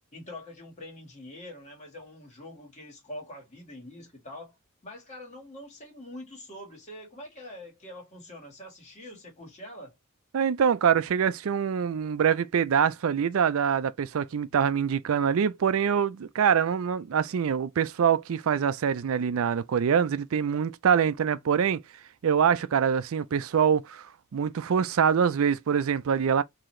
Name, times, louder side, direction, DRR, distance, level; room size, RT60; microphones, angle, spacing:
voice 1, 0.1-4.5 4.8-9.9, left 1 dB, 35° left, 1.7 m, -44 dB
voice 2, 10.3-21.8 22.2-24.1 24.3-26.4, right 7 dB, 70° right, 0.4 m, -24 dB
3.9 x 2.8 x 3.1 m
head